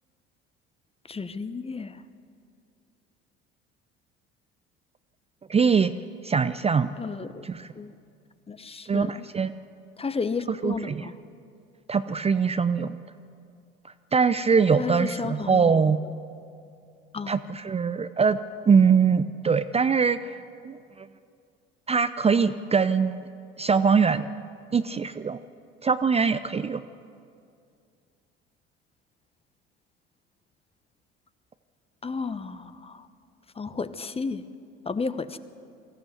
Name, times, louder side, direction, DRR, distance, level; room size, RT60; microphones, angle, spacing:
voice 1, 1.1-2.0 7.0-7.5 7.8-7.9 8.5-9.2 10.0-11.2 14.8-16.1 17.1-17.3 32.0-33.1 33.5-34.5 34.8-35.4, left 4 dB, 20° left, 12 dB, 1.1 m, -33 dB
voice 2, 5.5-5.9 6.2-6.9 7.4-7.7 8.9-9.5 10.6-11.1 11.9-13.0 14.1-16.0 17.3-18.4 18.7-20.4 20.6-21.1 21.9-23.2 23.6-24.3 24.7-25.4 25.8-26.8, right 5 dB, 20° right, 11 dB, 0.6 m, -22 dB
24.0 x 15.0 x 8.0 m, 2.4 s
figure-of-eight pair, 60°, 30 cm